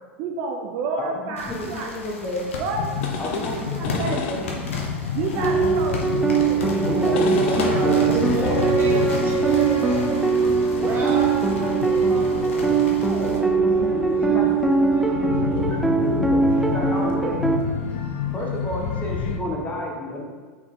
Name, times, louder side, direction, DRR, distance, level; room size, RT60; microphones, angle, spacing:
voice 1, 0.2-1.9 2.6-4.4 5.1-6.6 12.8-13.9, right 4 dB, 50° right, 1 dB, 0.7 m, -30 dB
voice 2, 1.0-2.4 3.2-4.5 7.0-8.6 8.9-9.0 13.9-17.4 18.3-20.2, left 1 dB, 20° left, -2 dB, 1.4 m, -31 dB
sound 1, 1.4-13.4, left 2 dB, 80° left, 1.1 m, -37 dB
sound 2, 2.7-19.4, left 6 dB, 65° left, 0.8 m, -30 dB
sound 3, 5.4-17.6, right 4 dB, 5° right, 0.5 m, -21 dB
voice 3, 6.4-12.8 13.3-15.5 16.5-16.7 16.9-17.4, right 2 dB, 30° right, -2 dB, 1.7 m, -31 dB
5.9 x 4.4 x 3.8 m, 1.5 s
hypercardioid pair, 90°, 7 cm